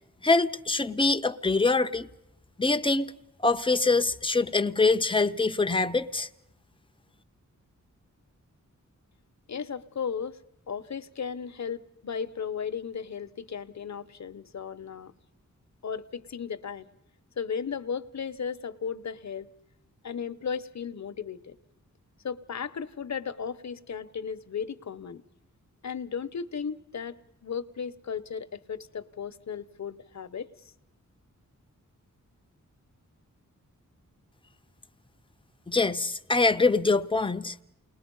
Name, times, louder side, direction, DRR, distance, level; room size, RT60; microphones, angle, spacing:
voice 1, 0.2-2.1 2.6-3.1 3.4-6.3 35.7-37.5, left 3 dB, 15° left, 0.7 m, -24 dB
voice 2, 9.5-10.4 10.7-15.1 15.8-16.9 17.4-19.5 20.0-21.6 22.2-25.2 25.8-30.5, left 6 dB, 60° left, 1.0 m, -35 dB
29.0 x 20.0 x 5.5 m
wide cardioid pair, 125°, 32 cm